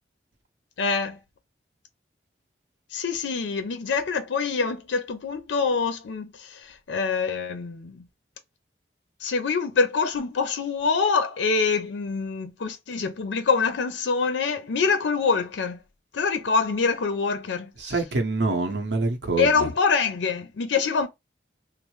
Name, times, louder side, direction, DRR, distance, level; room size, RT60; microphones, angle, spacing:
voice 1, 0.8-1.2 2.9-8.1 9.2-15.8 16.1-17.9 18.5-18.8 19.4-21.1, left 5 dB, 85° left, 0.5 m, -25 dB
voice 2, 17.8-19.7, right 3 dB, 80° right, 0.8 m, -26 dB
3.1 x 2.0 x 3.1 m
head